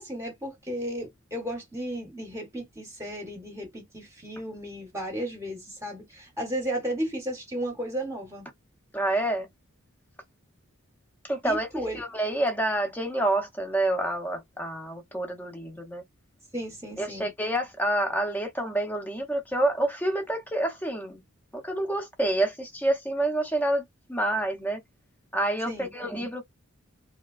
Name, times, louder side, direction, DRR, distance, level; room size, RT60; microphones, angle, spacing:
voice 1, 0.0-8.5 11.4-12.0 16.5-17.3 25.7-25.9, right 1 dB, 15° right, 0.9 m, -34 dB
voice 2, 8.9-9.5 11.2-11.7 11.9-16.0 17.0-21.2 21.5-24.8 25.3-26.4, right 1 dB, 10° left, 0.6 m, -28 dB
3.3 x 2.8 x 2.4 m
head